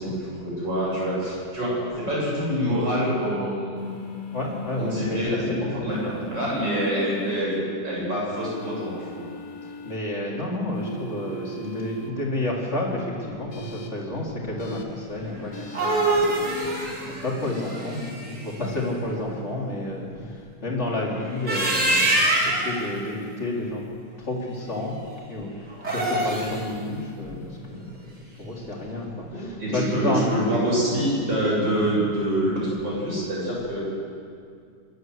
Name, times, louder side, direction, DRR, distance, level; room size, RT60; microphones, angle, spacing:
voice 1, 0.0-3.9 4.8-5.3 5.8-7.6 7.8-9.2 29.3-33.8, equal, 90° right, -6 dB, 8.8 m, -26 dB
sound 1, 3.8-5.0 5.9-7.4 8.4-10.0 10.7-12.1 13.5-13.9 14.6-14.8 15.5-15.9 16.5-16.9 17.4-18.1, left 1 dB, 80° left, 2.6 m, -39 dB
voice 2, 4.3-5.7 9.6-23.8 24.2-25.0 25.3-28.1 28.3-30.4 31.7-32.0, left 1 dB, 40° left, -3 dB, 4.0 m, -30 dB
sound 2, 15.5-18.5 21.3-22.8 25.7-26.6, right 1 dB, 65° right, 4.3 m, -24 dB
26.0 x 13.0 x 8.0 m, 2.3 s
omnidirectional pair, 1.9 m